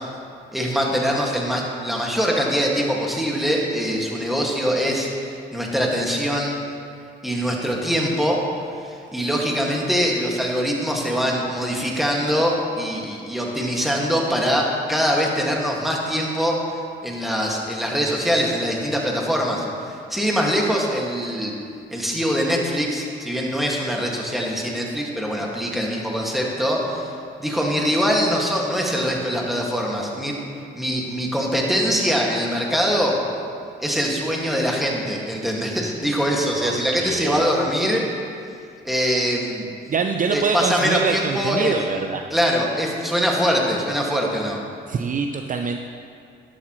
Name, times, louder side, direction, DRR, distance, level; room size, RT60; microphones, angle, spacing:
voice 1, 0.5-6.5 7.2-8.4 8.8-16.6 17.0-21.5 21.9-27.1 27.4-30.4 30.7-33.1 33.8-38.0 38.8-39.7 40.3-42.0 42.3-44.6, equal, ahead, -2 dB, 2.0 m, -23 dB
voice 2, 36.6-37.5 39.9-42.3 44.9-45.8, right 5 dB, 40° right, 5 dB, 0.6 m, -25 dB
11.5 x 11.5 x 3.2 m, 2.4 s
cardioid pair, 90°, 20 cm